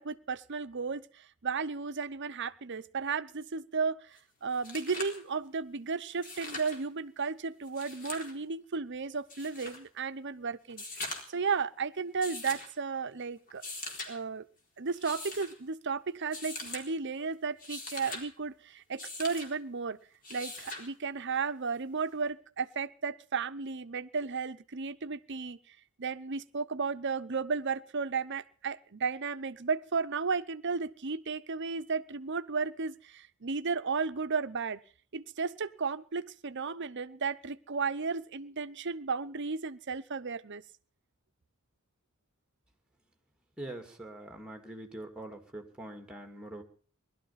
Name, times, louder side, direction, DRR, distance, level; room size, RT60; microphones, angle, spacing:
voice 1, 0.0-10.8 11.3-13.6 14.1-14.5 14.8-20.0 20.3-34.8 35.1-40.6, right 5 dB, 55° right, 13 dB, 0.8 m, -34 dB
sound 1, 4.2-4.3 4.5-5.2 6.1-6.8 7.6-8.3 9.3-9.8 10.7-11.4 12.2-12.7 13.5-14.1 14.9-15.5 16.3-16.8 17.5-18.2 19.0-19.5 20.2-20.9 22.3-22.4, left 2 dB, 40° left, 4.1 m, -41 dB
voice 2, 43.6-46.6, right 1 dB, 5° right, 5 dB, 2.5 m, -43 dB
20.0 x 12.5 x 5.8 m, 0.43 s
head